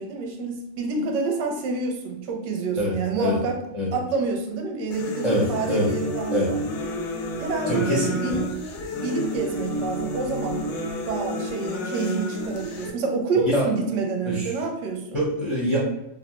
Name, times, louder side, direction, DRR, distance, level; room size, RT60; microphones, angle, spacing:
voice 1, 0.0-3.6 3.9-6.6 7.4-8.4 9.0-10.6 11.0-15.2, right 4 dB, 65° right, 2 dB, 0.8 m, -28 dB
voice 2, 2.8-3.4 3.7-3.9 5.2-5.9 6.3-6.5 7.7-8.4 13.5-13.7 14.3-14.5 15.1-15.8, equal, 35° left, -6 dB, 0.5 m, -24 dB
sound 1, 4.9-12.9, equal, 85° left, 1.0 m, -30 dB
2.6 x 2.1 x 2.9 m, 0.88 s
omnidirectional pair, 1.5 m